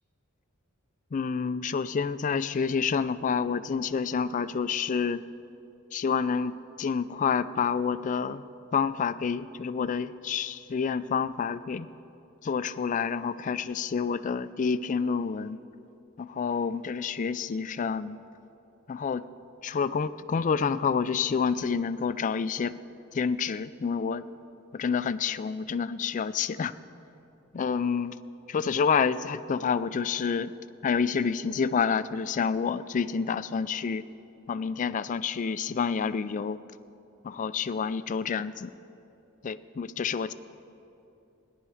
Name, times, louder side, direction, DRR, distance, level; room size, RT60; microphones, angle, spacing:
voice 1, 1.1-5.2 5.9-8.4 8.7-11.9 12.4-15.6 16.2-18.2 18.9-19.2 19.6-22.7 23.1-24.2 24.7-26.7 27.5-28.2 28.5-30.5 30.8-34.0 34.5-36.6 37.2-38.7 39.4-40.3, left 6 dB, 40° left, 14 dB, 0.3 m, -28 dB
17.5 x 11.0 x 4.9 m, 2.8 s
head